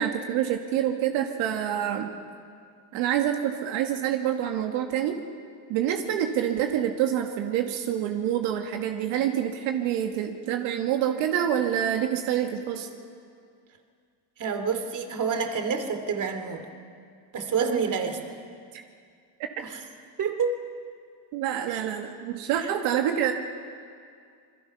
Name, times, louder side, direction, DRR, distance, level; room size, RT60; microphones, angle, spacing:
voice 1, 0.0-2.1 2.9-5.2 5.7-12.9 21.3-23.3, right 10 dB, 85° right, 4 dB, 1.8 m, -27 dB
voice 2, 14.4-16.7 17.3-18.2 19.6-19.8 20.2-20.6 21.7-21.8 22.6-22.7, right 5 dB, 40° right, 6 dB, 2.6 m, -28 dB
28.0 x 21.5 x 5.7 m, 2.2 s
cardioid pair, 115°, 48 cm